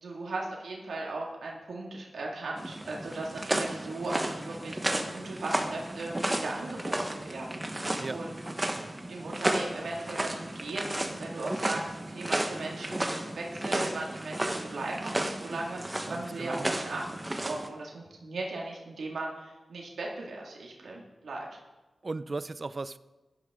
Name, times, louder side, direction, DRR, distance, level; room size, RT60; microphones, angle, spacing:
voice 1, 0.0-8.4 9.1-11.8 12.1-21.5, right 2 dB, 90° right, -2 dB, 2.1 m, -38 dB
sound 1, 2.6-17.7, right 1 dB, 20° right, 1.1 m, -33 dB
voice 2, 16.1-16.7 22.0-23.0, right 3 dB, 40° right, 15 dB, 0.4 m, -36 dB
15.0 x 11.0 x 3.7 m, 1.1 s
wide cardioid pair, 90°, 0 cm